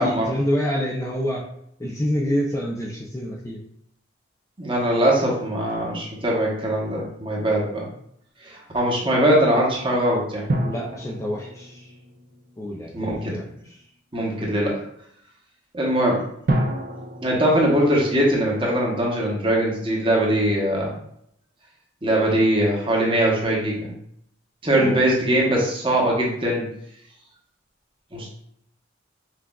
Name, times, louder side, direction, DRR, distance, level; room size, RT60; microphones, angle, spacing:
voice 1, 0.0-1.4 1.8-3.6 10.6-11.8 12.6-13.4 24.8-25.0, equal, 15° left, -3 dB, 0.4 m, -27 dB
voice 2, 4.6-7.9 8.4-10.4 12.9-13.4 14.1-14.8 15.7-16.2 17.2-20.9 22.0-23.9 24.6-26.7 28.1-28.3, right 1 dB, 25° right, -3 dB, 0.9 m, -21 dB
sound 1, 10.5-13.1 16.5-19.1 19.4-19.5, right 1 dB, 50° right, 0.4 m, -30 dB
5.8 x 2.3 x 2.3 m, 0.71 s
head